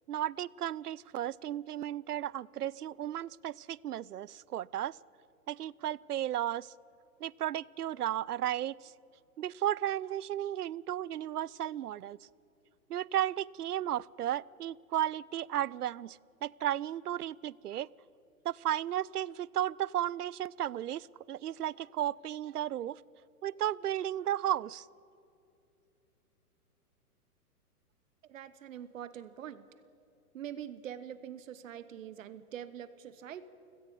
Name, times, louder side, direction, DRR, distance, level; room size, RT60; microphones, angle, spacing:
voice 1, 0.1-5.0 5.5-6.7 7.2-8.9 9.4-12.2 12.9-17.9 18.4-23.0 23.4-24.9, right 11 dB, 80° right, 25 dB, 0.6 m, -34 dB
voice 2, 28.2-29.7 30.3-33.5, right 9 dB, 55° right, 15 dB, 1.1 m, -44 dB
30.0 x 17.0 x 5.4 m, 2.8 s
hypercardioid pair, 125°, 46 cm